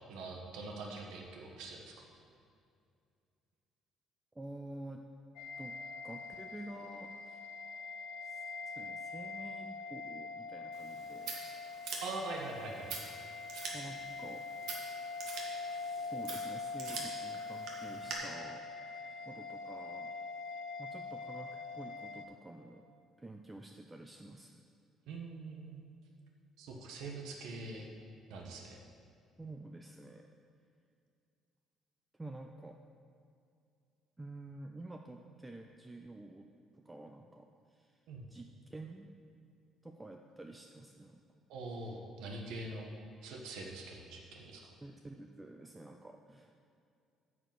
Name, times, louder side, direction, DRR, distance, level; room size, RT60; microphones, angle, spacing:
voice 1, 0.1-1.9 12.0-12.9 25.1-25.8 26.6-27.9 28.3-28.8 38.1-38.3 41.5-42.9 43.2-44.6, right 2 dB, 90° right, 0 dB, 1.2 m, -43 dB
voice 2, 4.3-5.0 5.6-5.8 6.0-7.4 8.2-11.4 13.7-14.4 15.6-20.1 20.8-22.9 23.2-24.6 29.4-30.3 32.1-32.8 34.2-36.5 36.7-38.0 38.3-39.1 39.8-41.2 44.8-46.5, right 2 dB, 10° right, 4 dB, 0.4 m, -49 dB
sound 1, 5.4-22.3, left 4 dB, 80° left, 0.7 m, -43 dB
Scissors, 10.7-18.1, right 4 dB, 70° right, 1.7 m, -46 dB
9.6 x 5.0 x 7.6 m, 2.4 s
cardioid pair, 155°, 0 cm